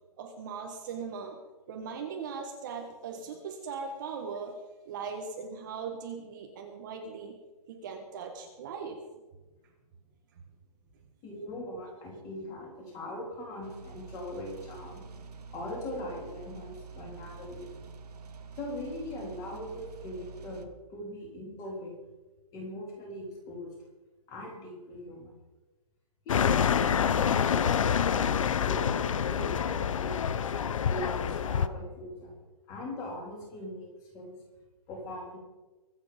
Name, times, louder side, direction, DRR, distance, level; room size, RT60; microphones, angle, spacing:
voice 1, 0.2-1.4 1.7-4.6 4.8-7.3 7.7-9.0, right 5 dB, 30° right, 2 dB, 1.5 m, -39 dB
voice 2, 11.2-15.0 15.5-17.9 18.6-21.9 22.5-23.7 24.3-25.4 26.3-28.3 28.6-30.4 30.9-32.3 32.7-34.4 34.9-35.4, left 1 dB, 15° left, -2 dB, 3.9 m, -40 dB
sound 1, 13.6-20.7, right 5 dB, 85° right, 1.8 m, -47 dB
sound 2, 26.3-31.7, left 8 dB, 55° left, 0.8 m, -27 dB
24.0 x 8.2 x 5.3 m, 1.2 s
hypercardioid pair, 170°, 20 cm